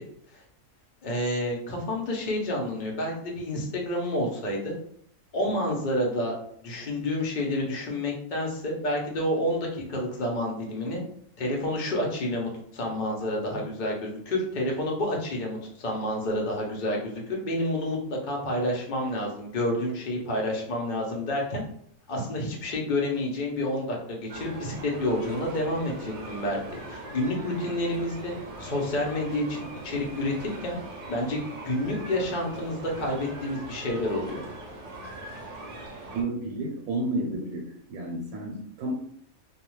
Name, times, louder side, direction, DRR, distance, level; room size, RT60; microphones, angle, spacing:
voice 1, 1.0-4.7 5.3-6.3 6.6-11.0 11.4-21.6 22.1-26.6 26.9-28.3 28.6-30.8 31.1-34.4, left 1 dB, 45° left, -1 dB, 0.7 m, -29 dB
sound 1, 24.3-36.2, right 2 dB, 55° right, 0.7 m, -41 dB
voice 2, 36.1-38.9, right 2 dB, 85° right, 0 dB, 1.0 m, -31 dB
2.3 x 2.3 x 3.0 m, 0.66 s
omnidirectional pair, 1.5 m